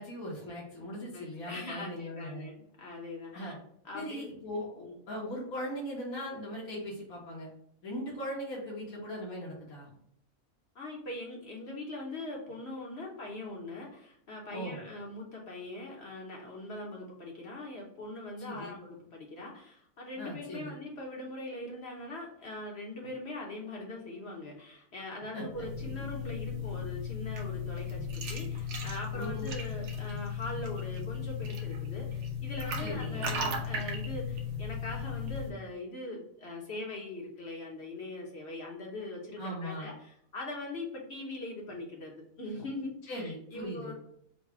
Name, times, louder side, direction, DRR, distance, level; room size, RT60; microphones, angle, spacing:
voice 1, 0.0-2.5 3.3-3.6 3.9-7.5 7.8-9.9 14.5-14.8 18.4-18.7 20.2-20.8 25.3-25.7 29.1-29.5 32.8-33.2 39.4-39.9 43.1-43.9, equal, 75° left, -4 dB, 1.6 m, -39 dB
voice 2, 1.1-3.5 3.8-4.3 4.8-4.9 10.7-43.9, left 2 dB, 50° left, -1 dB, 1.1 m, -41 dB
sound 1, 25.5-35.5, left 4 dB, 65° right, 0.9 m, -36 dB
4.0 x 2.3 x 4.6 m, 0.69 s
omnidirectional pair, 1.5 m